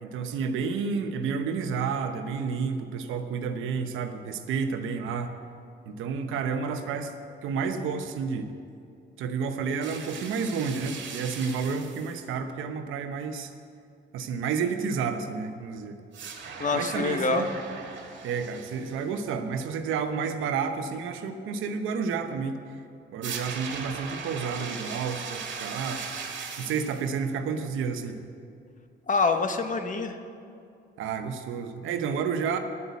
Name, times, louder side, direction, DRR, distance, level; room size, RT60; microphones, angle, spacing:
voice 1, 0.0-5.3 5.9-7.1 7.4-8.5 9.2-13.5 14.1-16.0 16.7-17.5 18.2-22.6 23.1-26.0 26.6-28.2 31.0-32.6, right 5 dB, 85° right, 7 dB, 0.9 m, -30 dB
sound 1, 9.8-12.2 16.1-19.1 23.2-27.1, right 5 dB, 70° right, 1.7 m, -38 dB
voice 2, 16.6-17.5 29.1-30.2, left 3 dB, 40° left, 7 dB, 1.0 m, -26 dB
10.0 x 8.3 x 8.2 m, 2.5 s
cardioid pair, 90°, 20 cm